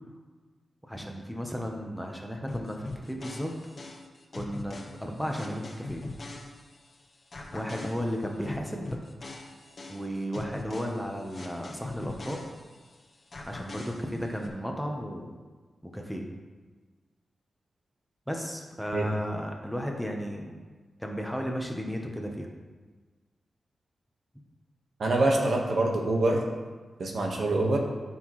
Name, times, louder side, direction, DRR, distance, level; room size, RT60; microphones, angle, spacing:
voice 1, 0.8-3.5 3.8-3.9 4.3-6.0 7.5-9.0 9.9-12.4 13.5-15.3 15.8-16.2 18.3-20.6 21.0-22.5, equal, ahead, 1 dB, 0.9 m, -34 dB
sound 1, 2.5-6.9 7.3-12.9 13.3-14.5, left 2 dB, 40° left, 1.2 m, -42 dB
voice 2, 25.0-26.4 27.0-27.8, right 2 dB, 60° right, 0 dB, 1.4 m, -25 dB
13.5 x 5.7 x 3.2 m, 1.4 s
wide cardioid pair, 130°, 0 cm